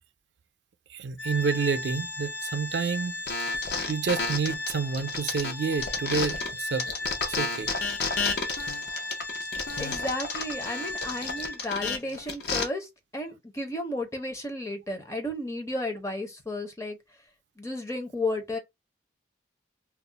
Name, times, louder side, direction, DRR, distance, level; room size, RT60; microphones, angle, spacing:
voice 1, 0.9-3.2 3.9-6.9 7.3-7.7, right 5 dB, 75° right, 0.4 m, -29 dB
Organ, 1.2-11.8, left 2 dB, 80° left, 1.1 m, -36 dB
sound 1, 3.3-6.5 6.8-12.6, left 4 dB, 65° left, 0.6 m, -31 dB
voice 2, 9.8-17.0 17.6-18.6, left 1 dB, 15° left, 0.5 m, -33 dB
2.3 x 2.0 x 3.7 m
head